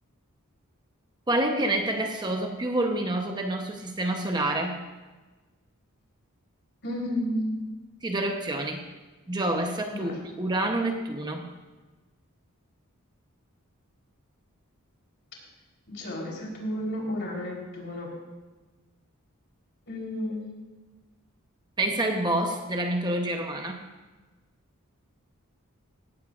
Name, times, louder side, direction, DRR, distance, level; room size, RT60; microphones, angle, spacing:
voice 1, 1.3-4.8 8.0-8.8 9.3-11.5 21.8-23.8, right 1 dB, 20° right, 3 dB, 1.0 m, -28 dB
voice 2, 6.8-7.7 9.9-10.1 15.9-18.1 19.9-20.4, equal, 55° left, -1 dB, 3.9 m, -32 dB
17.5 x 15.0 x 2.6 m, 1.3 s
head